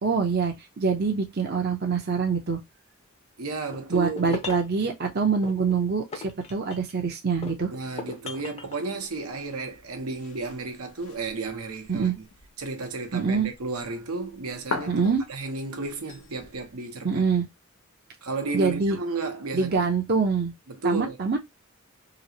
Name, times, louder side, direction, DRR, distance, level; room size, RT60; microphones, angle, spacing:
voice 1, 0.0-2.6 3.9-6.2 6.5-7.7 11.9-12.1 13.1-13.5 14.9-15.2 17.0-17.5 18.5-19.0 19.5-20.5 20.8-21.4, right 5 dB, 45° right, 0.7 m, -25 dB
voice 2, 3.4-4.4 7.7-12.2 12.6-15.0 15.3-17.2 18.2-19.9 20.7-21.2, right 3 dB, 85° right, 1.0 m, -33 dB
sound 1, 3.7-4.8 5.4-7.0 7.4-8.8, left 4 dB, 30° left, 0.6 m, -38 dB
sound 2, 9.0-16.8, left 3 dB, 85° left, 0.9 m, -42 dB
3.1 x 2.9 x 2.7 m
head